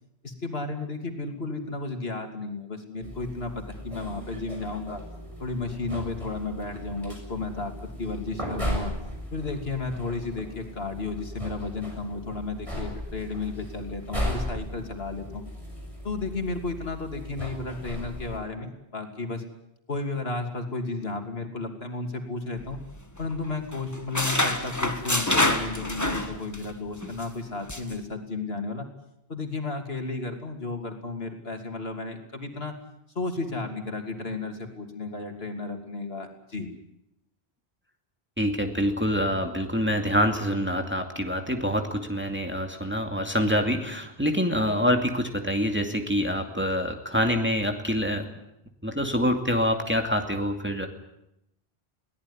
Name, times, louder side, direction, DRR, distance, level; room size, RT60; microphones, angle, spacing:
voice 1, 0.2-5.0 5.4-8.9 9.3-15.4 16.0-19.4 19.9-22.8 23.2-28.9 29.3-32.7 33.1-36.7, left 3 dB, 70° left, 5 dB, 3.1 m, -33 dB
sound 1, 3.0-18.4, equal, 30° right, 6.7 m, -37 dB
sound 2, 22.6-23.4 23.7-26.7 27.0-27.2 27.7-27.9, left 1 dB, 15° left, 1.7 m, -27 dB
voice 2, 38.4-48.3 48.8-50.9, equal, 10° right, 4 dB, 2.4 m, -26 dB
22.5 x 18.0 x 9.9 m, 0.85 s
omnidirectional pair, 1.1 m